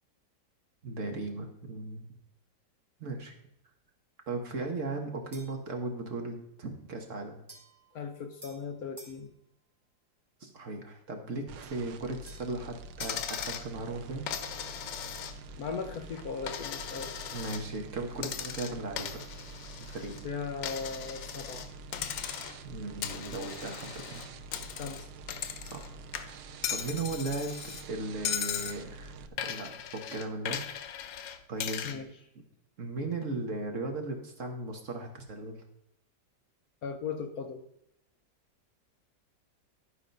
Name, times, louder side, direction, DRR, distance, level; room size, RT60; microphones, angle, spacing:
voice 1, 0.8-2.0 3.0-3.3 4.3-7.4 10.4-14.3 17.3-19.2 19.8-20.2 22.6-24.2 25.6-25.9 26.7-27.6 27.9-29.1 29.4-30.6 31.5-31.8 32.8-35.6, right 3 dB, 50° right, 3 dB, 1.5 m, -37 dB
sound 1, 5.3-5.7 7.5-9.2 11.6-13.3, right 1 dB, 15° right, 1.8 m, -52 dB
voice 2, 7.9-9.3 15.6-17.1 20.2-21.7 24.7-25.1 31.8-32.1 36.8-37.6, left 5 dB, 65° left, 6 dB, 1.2 m, -38 dB
sound 2, 11.5-29.3, right 3 dB, 70° right, 1.2 m, -47 dB
Coin (dropping), 13.0-13.7 14.3-15.6 15.9-17.6 18.2-20.2 20.6-21.7 21.9-22.7 23.0-25.9 26.1-27.8 28.2-28.8 29.4-32.0, left 9 dB, 90° left, 1.4 m, -38 dB
11.5 x 5.0 x 5.2 m, 0.77 s
omnidirectional pair, 1.9 m